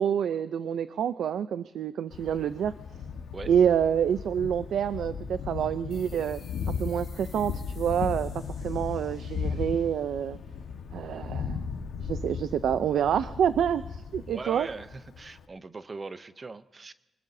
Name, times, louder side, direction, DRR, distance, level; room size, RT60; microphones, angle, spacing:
voice 1, 0.0-2.7 3.5-6.4 6.8-10.4 10.9-11.6 12.0-14.7, right 9 dB, 75° right, 12 dB, 0.5 m, -27 dB
Thunder, 2.1-15.4, left 5 dB, 85° left, 1.4 m, -36 dB
sound 1, 5.9-11.1, left 5 dB, 45° left, 2.1 m, -56 dB
voice 2, 14.3-16.9, right 3 dB, 25° right, 13 dB, 0.6 m, -40 dB
24.5 x 20.5 x 2.7 m, 1.0 s
wide cardioid pair, 175°, 0 cm